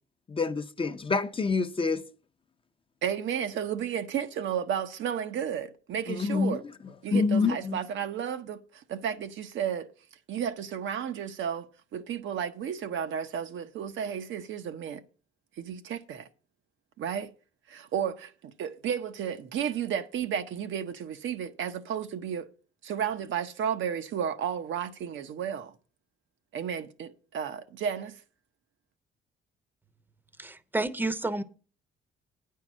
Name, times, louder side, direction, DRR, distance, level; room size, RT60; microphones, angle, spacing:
voice 1, 0.3-2.0 6.1-6.6 7.1-7.8, left 4 dB, 25° left, 0.6 m, -27 dB
voice 2, 3.0-6.6 7.0-9.9 10.3-15.0 15.6-16.3 17.0-17.3 17.7-22.5 22.8-25.7 26.5-28.2, right 8 dB, 70° right, 0.7 m, -33 dB
voice 3, 30.4-31.4, right 2 dB, 10° right, 0.7 m, -30 dB
9.0 x 4.7 x 7.3 m
cardioid pair, 90°, 20 cm